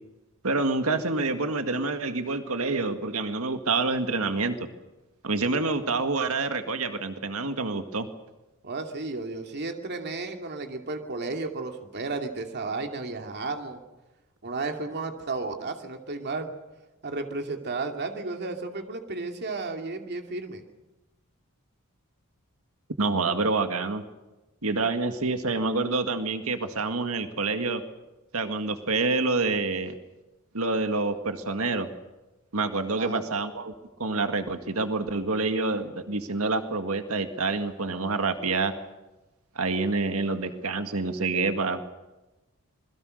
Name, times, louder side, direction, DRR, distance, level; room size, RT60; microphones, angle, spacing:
voice 1, 0.4-4.7 5.2-8.1 23.0-24.0 24.6-27.8 28.3-29.9 30.5-31.9 32.5-33.7 34.0-38.7 39.6-41.8, right 3 dB, 70° right, 7 dB, 2.0 m, -27 dB
voice 2, 8.6-13.8 14.4-16.5 17.0-20.6 33.0-33.2, right 3 dB, 50° right, 4 dB, 2.6 m, -33 dB
27.0 x 21.5 x 6.6 m, 1.1 s
head